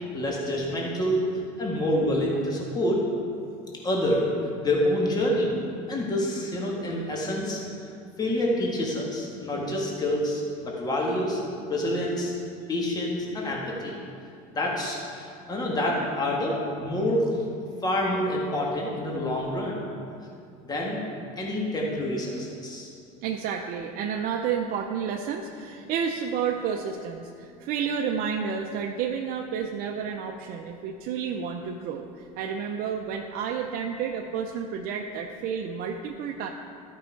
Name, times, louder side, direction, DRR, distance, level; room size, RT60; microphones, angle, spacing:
voice 1, 0.1-1.3 1.6-3.0 3.8-4.3 4.6-5.5 5.9-7.6 8.2-11.4 11.7-12.3 12.7-14.0 14.5-17.3 17.8-19.8 20.6-21.0 21.4-22.9, left 1 dB, 20° left, -3 dB, 1.7 m, -27 dB
voice 2, 23.2-36.5, right 7 dB, 55° right, 2 dB, 0.6 m, -30 dB
12.5 x 5.5 x 4.6 m, 2.4 s
supercardioid pair, 115°, 19 cm